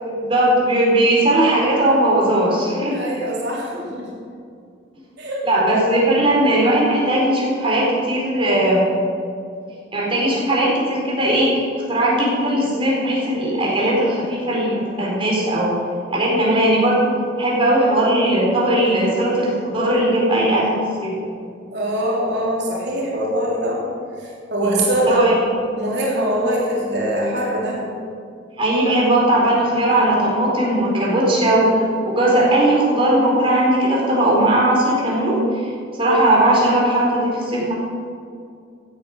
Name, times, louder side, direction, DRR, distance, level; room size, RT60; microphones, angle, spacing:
voice 1, 0.0-3.1 5.4-8.9 9.9-11.6 11.9-15.8 16.1-17.0 17.4-21.2 24.6-25.4 28.6-35.7 36.0-37.7, right 1 dB, 30° right, -4 dB, 4.3 m, -18 dB
voice 2, 2.8-4.1 5.2-5.4 21.7-23.9 24.2-25.4 25.8-27.8, right 1 dB, 60° right, -4 dB, 3.4 m, -22 dB
15.5 x 9.3 x 6.6 m, 2.4 s
head